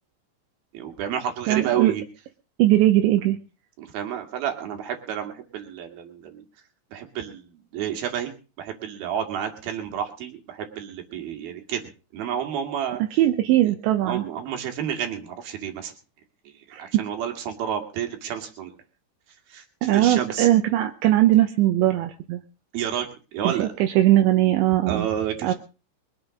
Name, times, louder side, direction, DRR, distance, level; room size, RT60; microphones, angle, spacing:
voice 1, 0.7-2.0 3.8-6.4 6.9-8.3 8.6-11.8 12.1-13.0 14.1-15.9 16.8-18.7 19.5-20.5 22.7-23.1 23.3-23.7 24.9-25.5, right 9 dB, 55° right, 5 dB, 3.8 m, -30 dB
voice 2, 1.5-1.9 2.6-3.4 13.1-14.2 16.7-17.0 19.8-22.4 23.4-25.1 25.4-25.5, right 14 dB, 80° right, 5 dB, 3.1 m, -20 dB
23.0 x 7.9 x 5.2 m, 0.35 s
omnidirectional pair, 5.5 m